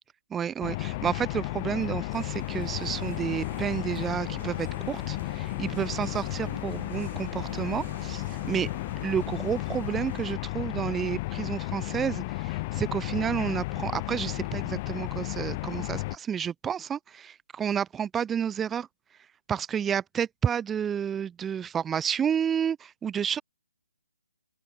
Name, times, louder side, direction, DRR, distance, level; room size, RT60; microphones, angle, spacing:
voice 1, 0.3-8.7 9.0-18.9 19.5-23.4, right 8 dB, 10° right, 2.6 m, -30 dB
sound 1, 0.6-16.2, left 22 dB, 25° left, 1.0 m, -33 dB
sound 2, 2.1-10.4, right 10 dB, 35° right, 5.4 m, -46 dB
open air
figure-of-eight pair, 140°, 0 cm